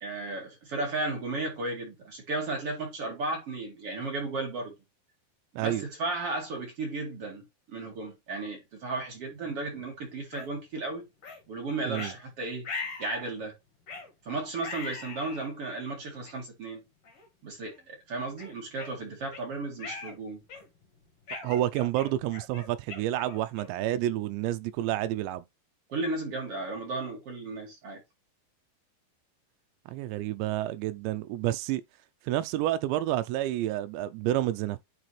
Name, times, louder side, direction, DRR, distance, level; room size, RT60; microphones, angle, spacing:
voice 1, 0.0-4.7 5.5-11.0 11.5-12.7 13.0-13.5 14.3-16.8 17.4-20.4 25.9-28.0, right 2 dB, 40° right, 2.4 m, -34 dB
sound 1, 10.3-10.5 11.2-11.4 11.9-12.2 12.6-13.3 13.9-14.1 14.6-15.5 16.2-16.3 17.0-17.3 17.7-17.8 18.4-19.4 19.8-20.2 20.5-20.8 21.3-23.8, left 4 dB, 50° left, 1.8 m, -40 dB
voice 2, 21.4-25.4 29.9-31.8 32.3-34.8, right 13 dB, 80° right, 2.7 m, -29 dB
9.9 x 4.4 x 3.2 m
omnidirectional pair, 5.4 m